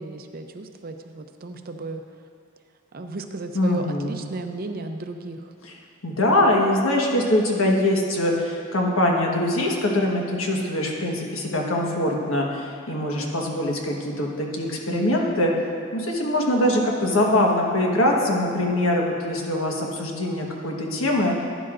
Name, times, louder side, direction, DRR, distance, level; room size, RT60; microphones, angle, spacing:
voice 1, 0.0-2.0 2.9-5.4, right 2 dB, 45° right, 6 dB, 0.6 m, -34 dB
voice 2, 3.5-4.2 5.6-5.7 6.0-15.5 15.9-21.4, left 1 dB, 80° left, -1 dB, 1.3 m, -23 dB
12.0 x 10.0 x 2.5 m, 2.3 s
head